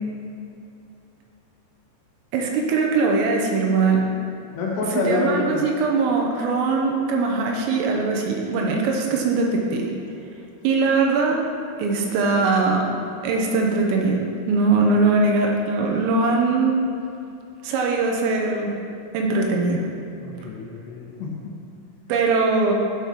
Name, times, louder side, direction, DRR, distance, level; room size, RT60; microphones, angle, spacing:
voice 1, 2.3-4.0 4.8-9.9 10.6-11.4 11.8-12.9 13.2-16.8 17.6-18.7 19.1-19.9 22.1-22.7, right 3 dB, 80° right, 1 dB, 3.7 m, -21 dB
voice 2, 4.5-5.6 20.2-21.5, left 3 dB, 70° left, -3 dB, 3.2 m, -26 dB
12.5 x 5.5 x 5.9 m, 2.6 s
omnidirectional pair, 5.8 m